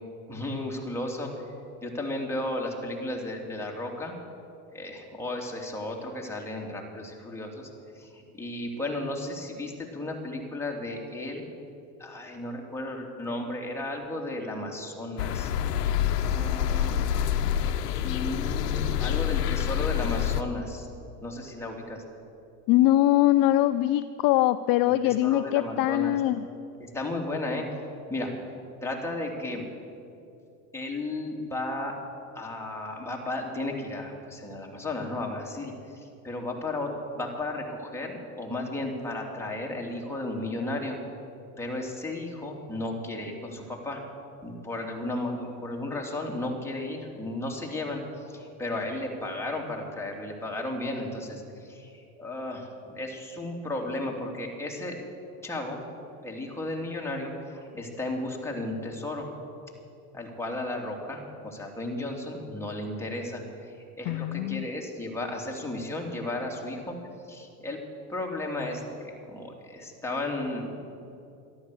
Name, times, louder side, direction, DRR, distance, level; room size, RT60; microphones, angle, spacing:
voice 1, 0.3-1.3 1.8-4.1 4.7-7.7 8.0-11.4 12.0-15.5 16.1-17.0 17.9-20.9 21.2-22.0 24.8-26.2 26.8-27.6 28.1-28.3 28.8-29.6 30.7-32.0 32.3-41.0 41.6-44.0 44.4-48.0 48.3-55.0 55.4-55.8 56.2-59.3 60.1-67.0 67.3-67.8 68.1-70.7, left 2 dB, 5° left, -1 dB, 3.0 m, -34 dB
sound 1, 15.2-20.4, left 10 dB, 90° left, 0.8 m, -27 dB
voice 2, 22.7-26.5 64.1-64.7, left 14 dB, 50° left, 13 dB, 0.5 m, -22 dB
13.0 x 11.5 x 8.0 m, 2.6 s
hypercardioid pair, 90°, 46 cm